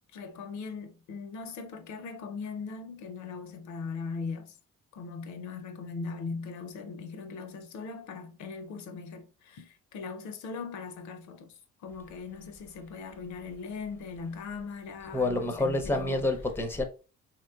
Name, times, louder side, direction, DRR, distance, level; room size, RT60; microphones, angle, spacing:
voice 1, 0.1-4.6 4.9-11.5 11.8-16.2, left 4 dB, 75° left, 0.6 m, -39 dB
voice 2, 15.1-16.8, left 2 dB, 10° left, 0.5 m, -28 dB
3.1 x 2.9 x 2.2 m
cardioid pair, 90°, 30 cm